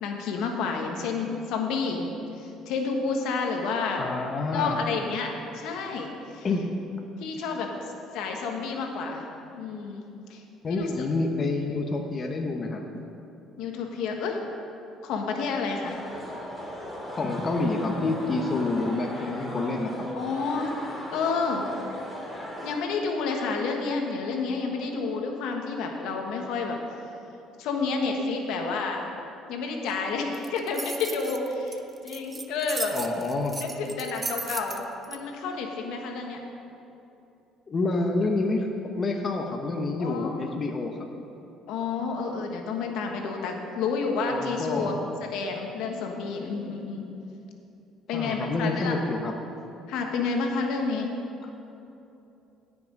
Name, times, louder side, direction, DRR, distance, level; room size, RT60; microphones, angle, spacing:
voice 1, 0.0-4.0 4.5-6.5 7.2-7.7 8.1-9.3 9.5-10.0 10.3-10.4 10.7-10.9 13.6-14.4 15.0-16.0 20.1-20.7 21.1-21.7 22.6-26.8 27.6-29.0 29.5-33.0 33.6-34.8 35.1-36.4 40.0-40.4 41.7-44.9 45.3-47.1 48.1-48.9 49.9-51.1, left 4 dB, 75° left, 2 dB, 1.4 m, -30 dB
voice 2, 4.0-4.8 6.4-6.6 10.6-13.1 17.1-20.1 32.9-33.6 37.7-38.7 39.0-41.0 44.3-45.0 48.1-49.3, left 3 dB, 30° left, 3 dB, 0.9 m, -28 dB
sound 1, 15.8-22.8, equal, 10° left, 2.3 m, -38 dB
sound 2, 30.3-35.2, right 3 dB, 20° right, 0.6 m, -36 dB
16.5 x 6.1 x 5.2 m, 2.8 s
cardioid pair, 110°, 0 cm